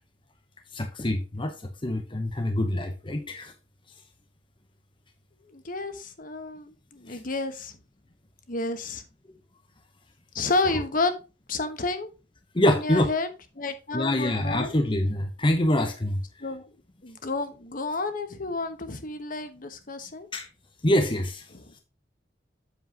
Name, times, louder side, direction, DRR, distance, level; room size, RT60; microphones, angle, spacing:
voice 1, 0.7-1.5 1.8-3.5 7.1-7.2 12.5-13.1 13.9-16.2 20.3-20.5 20.8-21.4, left 1 dB, 30° left, 0.9 m, -25 dB
voice 2, 5.5-7.7 8.5-9.0 10.3-11.1 11.5-12.1 12.8-13.3 13.6-14.7 16.4-16.6 17.0-20.3 21.5-21.7, left 3 dB, 50° left, 1.2 m, -30 dB
8.0 x 7.3 x 2.9 m
head